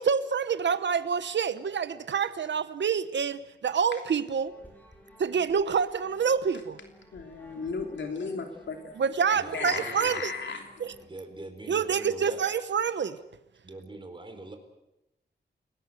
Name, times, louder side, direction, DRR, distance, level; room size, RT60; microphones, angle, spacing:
voice 1, 0.0-4.5 5.2-6.8 9.0-10.3 10.8-10.9 11.7-13.2, right 6 dB, 80° right, 13 dB, 1.1 m, -27 dB
sound 1, 4.3-11.1, equal, 10° left, 5.1 m, -55 dB
voice 2, 7.1-8.9 9.5-10.7, left 4 dB, 90° left, 4 dB, 3.0 m, -34 dB
voice 3, 9.3-10.2 11.0-12.4 13.6-14.6, right 2 dB, 25° right, 5 dB, 4.3 m, -43 dB
29.5 x 18.5 x 7.9 m, 0.91 s
wide cardioid pair, 140°, 18 cm